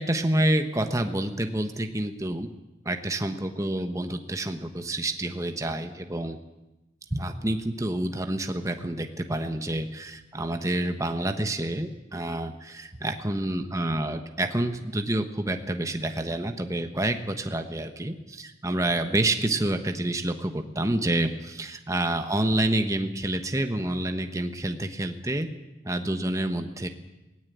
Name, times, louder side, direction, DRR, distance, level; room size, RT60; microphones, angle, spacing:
voice 1, 0.0-2.5 2.8-6.4 7.1-25.5 25.8-26.9, right 1 dB, 15° right, 6 dB, 1.1 m, -28 dB
17.5 x 16.0 x 9.4 m, 1.0 s
head